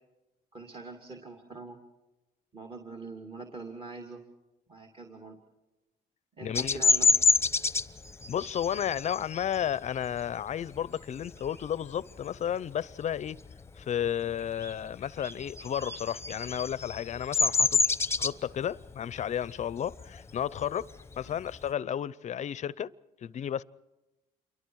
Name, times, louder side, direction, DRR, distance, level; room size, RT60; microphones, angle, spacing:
voice 1, 0.5-1.8 2.5-4.2 4.7-5.4 6.4-7.2, right 3 dB, 30° right, 2.6 m, -44 dB
voice 2, 6.4-6.8 8.3-13.4 13.8-17.8 18.2-20.9 21.2-22.9 23.2-23.6, left 9 dB, 45° left, 0.6 m, -32 dB
Bird vocalization bird call bird song, 6.5-11.7 12.2-12.5 12.8-14.0 14.3-21.7, left 4 dB, 15° left, 1.0 m, -28 dB
28.0 x 23.5 x 4.8 m
cardioid pair, 110°, 17 cm